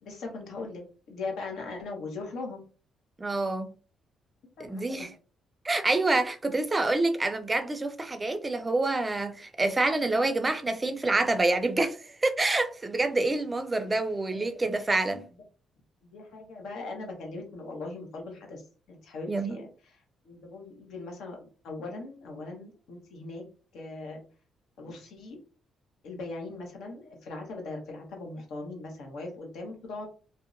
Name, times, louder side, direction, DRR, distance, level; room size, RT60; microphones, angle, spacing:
voice 1, 0.0-2.6 4.6-5.1 14.3-14.8 15.1-15.2 16.0-18.6 18.9-20.0 20.2-23.4 23.7-24.2 24.8-25.4 26.0-30.1, left 3 dB, 80° left, 0.9 m, -40 dB
voice 2, 3.2-3.7 4.6-5.1 5.6-12.0 12.2-15.2 19.3-19.5, right 2 dB, 25° right, 0.4 m, -27 dB
2.7 x 2.1 x 2.5 m
cardioid pair, 90°, 0 cm